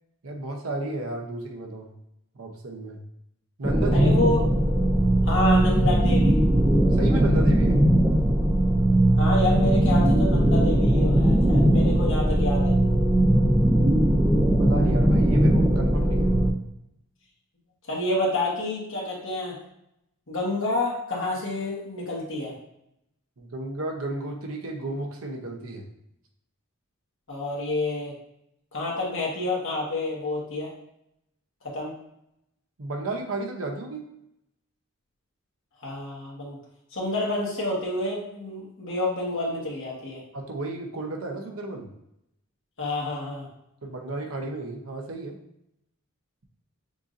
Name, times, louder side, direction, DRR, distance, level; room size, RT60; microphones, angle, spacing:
voice 1, 0.2-1.9 2.3-3.0 3.6-4.2 6.9-7.8 14.6-16.3 23.4-25.9 32.8-34.0 40.3-41.9 43.8-45.4, right 2 dB, 70° right, 2 dB, 0.8 m, -33 dB
sound 1, 3.6-16.5, right 1 dB, 10° right, 0.4 m, -20 dB
voice 2, 3.9-4.4 5.2-6.4 9.2-12.8 17.9-19.6 20.3-22.5 27.3-28.1 28.7-30.7 31.6-31.9 35.8-36.6 36.9-40.2 42.8-43.5, left 2 dB, 60° left, -4 dB, 1.4 m, -28 dB
6.8 x 2.7 x 2.5 m, 0.79 s
head